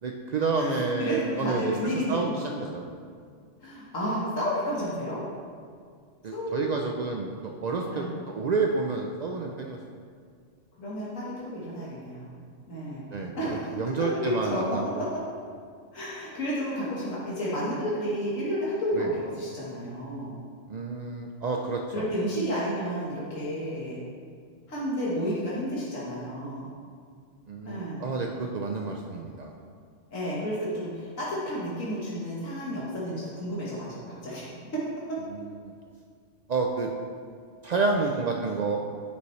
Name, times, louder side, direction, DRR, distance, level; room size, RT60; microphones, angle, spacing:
voice 1, 0.0-1.7 2.1-2.9 6.2-9.8 13.1-13.4 13.8-15.0 19.0-19.1 20.7-22.1 27.5-29.5 35.3-35.7 36.5-36.9 37.6-38.8, right 4 dB, 90° right, 1 dB, 0.3 m, -29 dB
voice 2, 0.5-2.6 3.6-5.2 6.3-6.7 7.9-8.1 10.8-12.3 12.7-13.1 13.4-14.8 15.9-20.4 21.9-24.0 24.7-26.7 27.6-28.1 30.1-34.8 35.1-35.2, equal, 80° left, -7 dB, 1.8 m, -31 dB
9.8 x 5.6 x 3.1 m, 2.1 s
omnidirectional pair, 1.3 m